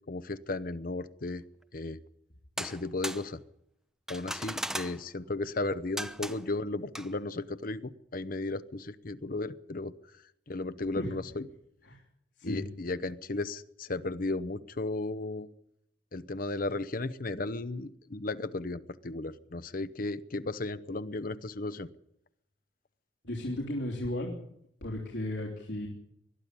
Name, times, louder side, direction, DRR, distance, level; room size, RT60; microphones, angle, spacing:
voice 1, 0.1-1.4 1.7-2.0 2.6-3.4 4.1-9.9 10.5-11.5 12.4-15.5 16.1-21.9, left 2 dB, 50° left, 13 dB, 0.9 m, -35 dB
sound 1, 2.6-3.3 4.1-5.0 6.0-6.5 6.9-7.1, right 1 dB, 5° right, 0.8 m, -37 dB
voice 2, 23.2-24.4 24.8-25.9, left 1 dB, 90° left, -2 dB, 3.7 m, -34 dB
21.0 x 13.0 x 9.8 m, 0.74 s
head